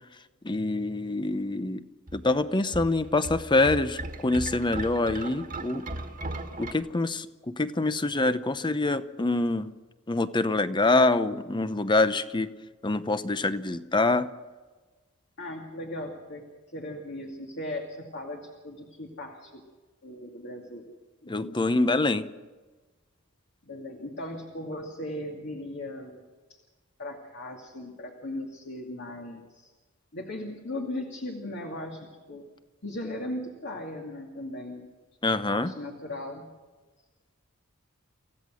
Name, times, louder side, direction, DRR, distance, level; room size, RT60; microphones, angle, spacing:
voice 1, 0.4-1.8 2.1-5.9 6.6-9.7 10.1-12.5 12.8-14.3 21.3-22.2 35.2-35.7, left 2 dB, 20° left, 12 dB, 0.8 m, -25 dB
sound 1, 2.1-6.7, right 2 dB, 40° right, 1.7 m, -37 dB
voice 2, 15.4-16.4 16.7-19.6 20.0-20.8 21.2-21.6 23.6-26.2 27.0-29.7 30.1-32.4 32.8-34.9 35.5-36.5, left 1 dB, 55° left, 1 dB, 2.4 m, -38 dB
26.5 x 16.0 x 6.3 m, 1.3 s
head